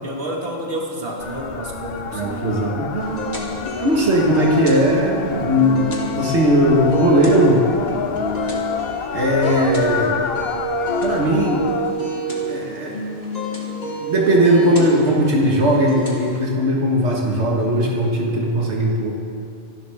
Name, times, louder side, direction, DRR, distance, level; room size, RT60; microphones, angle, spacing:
voice 1, 0.0-2.7, right 1 dB, 60° right, -1 dB, 2.2 m, -29 dB
sound 1, 1.2-11.9, left 7 dB, 65° left, 0.9 m, -28 dB
voice 2, 2.1-3.3 3.6-7.7 9.1-10.1 11.0-11.6 12.5-13.0 14.0-19.1, equal, 80° right, -2 dB, 1.9 m, -18 dB
sound 2, 3.0-16.4, right 2 dB, 35° left, 2.2 m, -28 dB
26.5 x 12.0 x 3.6 m, 2.5 s
omnidirectional pair, 1.1 m